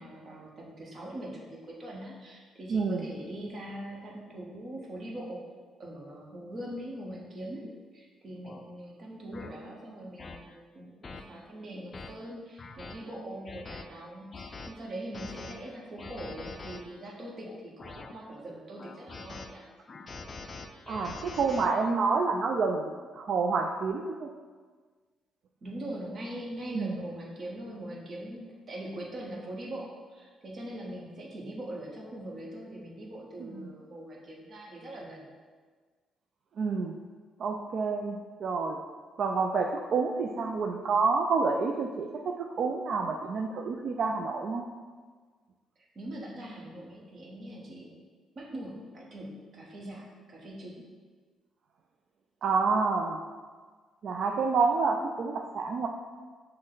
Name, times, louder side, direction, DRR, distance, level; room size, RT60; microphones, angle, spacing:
voice 1, 0.0-5.4 5.8-7.6 7.9-19.6 25.6-35.3 45.9-48.0 48.3-50.8, right 1 dB, 45° right, -2 dB, 1.0 m, -42 dB
voice 2, 2.7-3.0 20.9-24.3 26.7-26.9 33.4-33.7 36.6-37.0 37.4-38.8 39.2-44.6 52.4-53.2 54.0-55.9, right 4 dB, 60° right, 2 dB, 0.3 m, -28 dB
sound 1, 7.6-7.8 8.4-8.6 9.3-9.5 10.2-10.4 11.0-11.2 11.7-12.1 12.6-13.0 13.5-13.8 14.3-14.7 15.1-15.5 16.0-16.8 17.4-18.1 18.8-19.5 19.9-21.7, left 4 dB, 40° left, 0.4 m, -43 dB
6.1 x 2.1 x 3.9 m, 1.5 s
cardioid pair, 90°, 0 cm